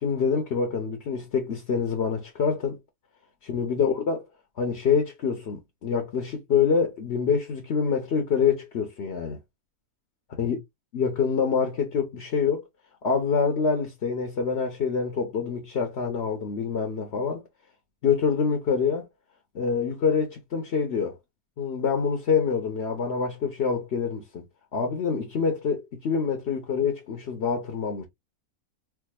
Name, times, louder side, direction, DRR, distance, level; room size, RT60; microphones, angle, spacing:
voice 1, 0.0-2.8 3.4-4.3 4.6-9.4 10.3-10.6 10.9-12.6 13.0-17.4 18.0-19.1 19.5-21.1 21.6-24.4 24.7-28.1, left 6 dB, 50° left, 1.1 m, -26 dB
4.7 x 2.5 x 2.3 m
omnidirectional pair, 1.5 m